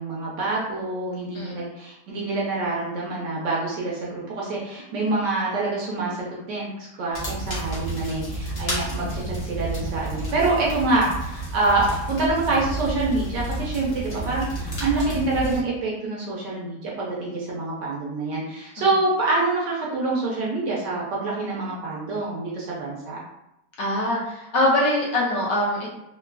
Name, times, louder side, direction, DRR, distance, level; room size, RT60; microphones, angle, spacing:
voice 1, 0.0-23.2, right 2 dB, 70° right, -4 dB, 1.1 m, -26 dB
sound 1, 7.1-15.6, right 1 dB, 50° left, 0.8 m, -31 dB
voice 2, 23.8-25.9, left 1 dB, 70° left, -4 dB, 1.2 m, -23 dB
3.8 x 2.3 x 2.2 m, 0.85 s
omnidirectional pair, 2.2 m